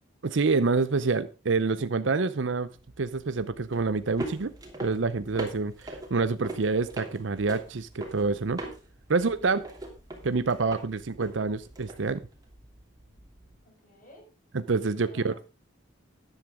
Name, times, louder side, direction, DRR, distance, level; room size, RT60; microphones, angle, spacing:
voice 1, 0.2-2.7 3.0-4.5 4.8-8.6 9.1-9.6 10.2-12.2 14.5-15.4, right 4 dB, 70° right, 0.6 m, -27 dB
sound 1, 2.7-13.6, right 1 dB, 20° right, 2.9 m, -42 dB
voice 2, 9.1-9.6 13.6-14.3 15.0-15.4, equal, 40° left, 6.9 m, -55 dB
13.0 x 10.5 x 3.6 m
head